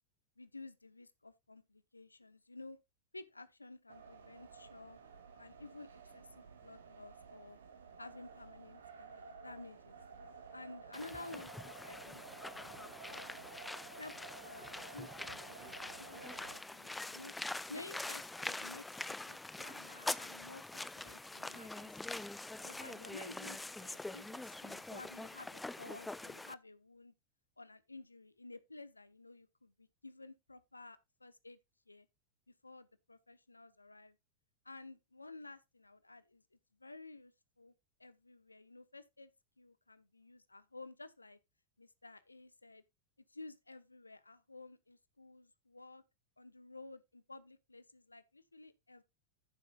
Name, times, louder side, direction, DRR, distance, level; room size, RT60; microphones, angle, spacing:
voice 1, 0.4-2.8 3.1-5.0 5.4-7.6 8.0-10.0 10.5-13.5 14.0-14.1 14.4-17.3 17.7-19.0 19.3-22.2 22.6-27.1 27.6-31.6 31.9-32.1 32.5-34.2 34.6-36.4 36.8-37.3 37.6-37.7 38.0-39.3 39.6-41.4 41.8-42.8 43.3-46.0 46.4-49.0, left 2 dB, 80° left, 0.9 m, -53 dB
sound 1, 3.9-16.6, right 5 dB, 70° right, 2.0 m, -53 dB
sound 2, 10.9-26.5, left 2 dB, 5° left, 0.5 m, -44 dB
14.5 x 7.4 x 2.4 m
figure-of-eight pair, 90°, 0 cm